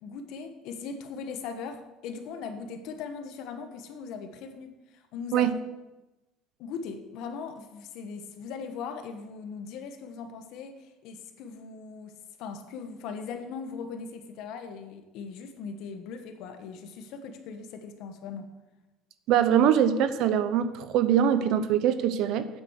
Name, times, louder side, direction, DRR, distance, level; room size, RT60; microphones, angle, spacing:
voice 1, 0.0-5.5 6.6-12.1 12.4-18.5, left 5 dB, 55° left, 7 dB, 1.3 m, -39 dB
voice 2, 19.3-22.5, right 9 dB, 50° right, 12 dB, 0.8 m, -23 dB
9.3 x 7.9 x 6.5 m, 1.0 s
cardioid pair, 175°, 0 cm